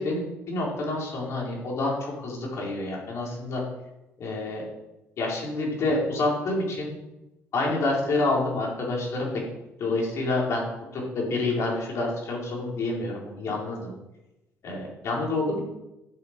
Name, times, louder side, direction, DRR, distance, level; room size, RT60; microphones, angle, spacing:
voice 1, 0.0-3.6 4.2-4.6 5.2-6.9 7.5-9.4 9.8-10.7 10.9-13.9 14.6-15.6, left 2 dB, 65° left, -3 dB, 4.7 m, -28 dB
15.0 x 6.9 x 5.3 m, 0.96 s
cardioid pair, 90°, 5 cm